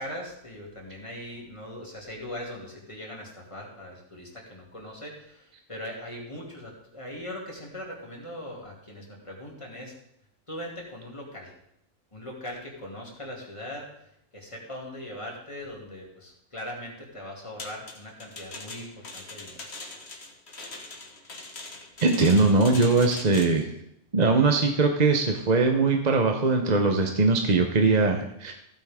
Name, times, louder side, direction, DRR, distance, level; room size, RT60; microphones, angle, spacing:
voice 1, 0.0-9.9 10.5-11.5 12.1-19.6, left 1 dB, 25° left, -2 dB, 2.7 m, -40 dB
sound 1, 17.6-23.7, left 2 dB, 55° left, 1.8 m, -41 dB
voice 2, 22.0-23.7 24.1-28.5, right 3 dB, 35° right, 3 dB, 1.0 m, -21 dB
15.5 x 9.0 x 3.7 m, 0.76 s
omnidirectional pair, 1.3 m